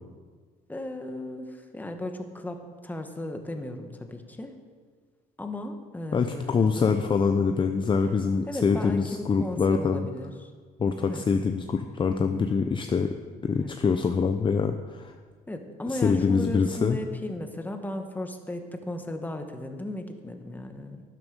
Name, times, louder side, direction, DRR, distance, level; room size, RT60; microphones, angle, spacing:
voice 1, 0.7-4.6 5.4-7.0 8.5-10.5 11.0-11.3 13.6-13.7 15.5-21.0, left 1 dB, 10° left, 5 dB, 1.4 m, -36 dB
voice 2, 6.1-10.1 10.8-13.2 13.4-15.1 15.9-17.0, left 5 dB, 30° left, 6 dB, 0.7 m, -25 dB
12.5 x 11.0 x 5.3 m, 1.5 s
cardioid pair, 110°, 17 cm